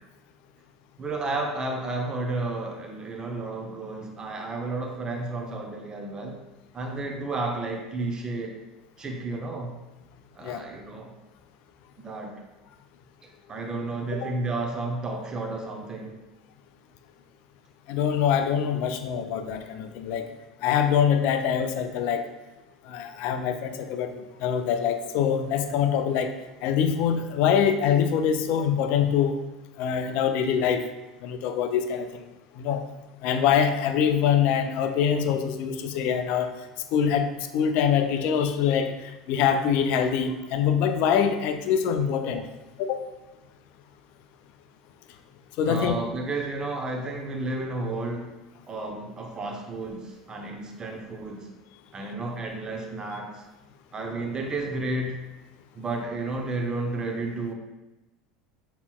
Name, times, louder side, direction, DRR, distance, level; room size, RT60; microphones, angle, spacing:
voice 1, 1.0-6.4 6.7-8.6 9.0-9.7 10.3-11.1 12.0-12.4 13.2-16.2 42.1-42.2 45.6-48.3 48.7-51.5 51.9-53.4 53.9-55.2 55.7-57.5, right 2 dB, 25° right, 2 dB, 0.8 m, -32 dB
voice 2, 17.9-20.3 20.6-22.2 22.9-26.3 26.6-29.4 29.8-30.8 31.2-32.2 32.6-32.9 33.2-36.5 36.9-42.4 42.8-43.0 45.6-46.0, left 8 dB, 50° left, 8 dB, 0.4 m, -24 dB
6.7 x 2.9 x 2.3 m, 1.0 s
figure-of-eight pair, 75°, 3 cm